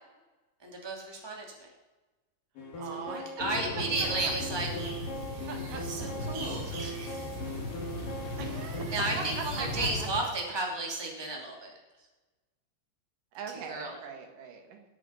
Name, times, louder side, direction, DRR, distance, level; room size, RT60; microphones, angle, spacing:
voice 1, 0.6-1.7 2.9-4.7 5.5-7.3 8.9-11.8 13.7-13.9, right 2 dB, 10° right, 0 dB, 1.4 m, -34 dB
sound 1, 2.6-8.9, left 1 dB, 55° left, 4.1 m, -40 dB
voice 2, 2.7-3.3 4.2-4.3 5.5-6.1 8.4-9.0 9.4-10.1 13.3-14.8, right 6 dB, 55° right, 3 dB, 3.0 m, -41 dB
sound 2, 3.4-10.2, left 2 dB, 75° left, 3.7 m, -38 dB
sound 3, 4.0-10.1, right 3 dB, 85° right, 5.8 m, -44 dB
19.5 x 8.5 x 5.8 m, 1.2 s
omnidirectional pair, 5.0 m